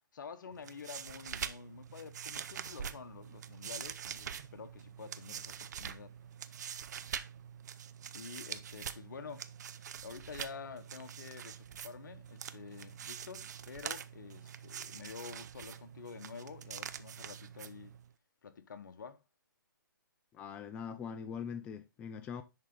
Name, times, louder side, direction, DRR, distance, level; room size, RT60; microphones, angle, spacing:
voice 1, 0.1-6.1 8.1-9.5 10.0-17.9 18.4-19.2, left 6 dB, 60° left, 1.1 m, -49 dB
sound 1, 0.5-18.1, right 8 dB, 50° right, 0.6 m, -45 dB
voice 2, 20.3-22.4, left 7 dB, 10° left, 0.4 m, -42 dB
10.5 x 3.9 x 3.7 m
hypercardioid pair, 145°, 12 cm